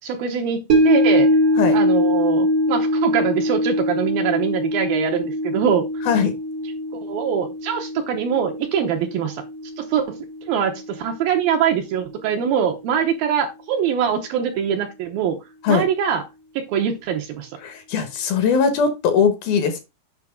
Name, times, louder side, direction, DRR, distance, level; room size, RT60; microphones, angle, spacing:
voice 1, 0.0-1.3 1.7-5.9 6.9-9.4 9.8-10.2 10.5-15.4 15.7-16.2 16.6-17.5, right 8 dB, 75° right, 4 dB, 2.4 m, -23 dB
sound 1, 0.7-11.1 11.4-11.5, left 1 dB, 60° right, 0.9 m, -22 dB
voice 2, 17.6-19.8, left 6 dB, 65° left, 9 dB, 2.7 m, -20 dB
8.3 x 5.8 x 3.5 m, 0.24 s
omnidirectional pair, 5.0 m